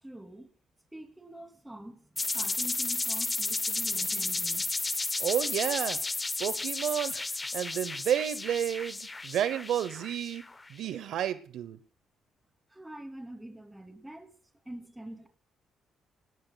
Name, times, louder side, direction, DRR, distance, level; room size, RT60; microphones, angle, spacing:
voice 1, 0.0-0.5 0.9-4.7 12.7-14.3 14.6-15.3, right 1 dB, 10° right, 2.8 m, -45 dB
sound 1, 2.2-10.7, left 3 dB, 20° left, 0.7 m, -33 dB
voice 2, 5.2-10.4 10.7-11.8, right 10 dB, 80° right, 0.8 m, -31 dB
30.0 x 18.5 x 2.3 m
cardioid pair, 90°, 0 cm